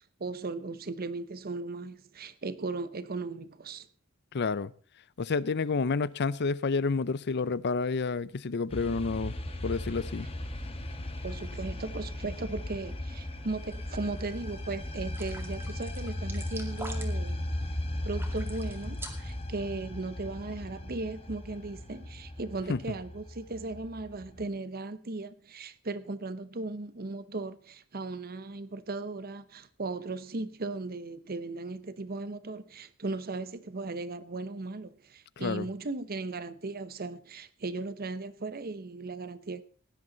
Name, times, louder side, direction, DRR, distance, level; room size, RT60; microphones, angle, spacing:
voice 1, 0.2-3.9 11.2-17.5 18.0-39.6, right 3 dB, 45° right, 0.9 m, -37 dB
voice 2, 4.3-4.7 5.2-9.3 9.6-10.3 22.7-22.8 35.4-35.7, left 4 dB, 50° left, 0.6 m, -29 dB
sound 1, 8.7-24.4, left 1 dB, 25° left, 1.6 m, -37 dB
sound 2, 13.7-14.2 14.6-14.7 15.1-17.3 18.1-19.4, right 2 dB, 10° right, 2.1 m, -44 dB
17.0 x 11.0 x 4.0 m
head